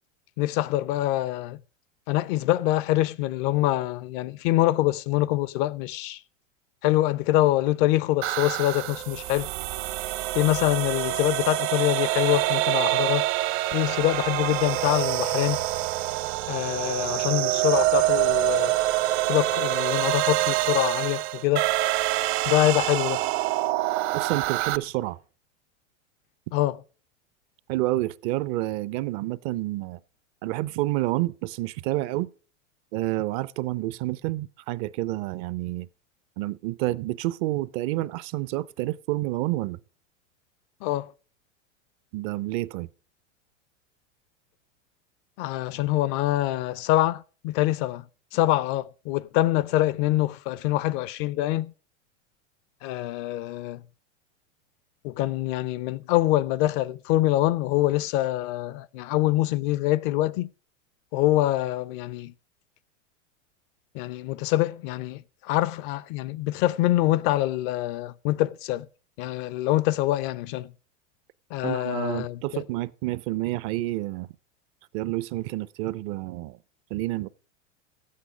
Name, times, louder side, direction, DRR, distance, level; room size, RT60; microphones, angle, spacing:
voice 1, 0.4-1.6 2.1-6.2 6.8-9.5 10.3-13.3 13.7-15.6 16.5-18.8 19.3-21.7 22.5-23.2 26.5-26.8 40.8-41.1 45.4-48.0 48.3-51.7 52.8-53.8 55.0-60.5 61.1-62.3 63.9-68.9 69.2-70.7 71.5-72.6, left 15 dB, 45° left, 0.5 m, -25 dB
sound 1, 8.2-24.8, right 16 dB, 60° right, 0.8 m, -26 dB
voice 2, 24.1-25.2 27.7-30.0 30.4-32.3 32.9-35.9 36.4-39.8 42.1-42.9 71.6-74.3 74.9-76.6 76.9-77.3, right 17 dB, 40° right, 0.4 m, -29 dB
12.5 x 8.6 x 4.9 m
hypercardioid pair, 110°, 37 cm